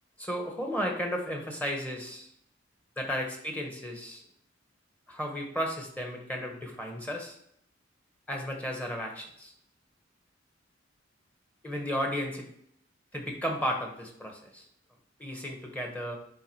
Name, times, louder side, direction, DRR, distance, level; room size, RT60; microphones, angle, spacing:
voice 1, 0.2-2.3 3.0-4.2 5.1-7.4 8.3-9.5 11.6-12.5 13.1-14.6 15.2-16.2, equal, 10° left, 1 dB, 1.4 m, -34 dB
9.4 x 3.9 x 4.8 m, 0.69 s
head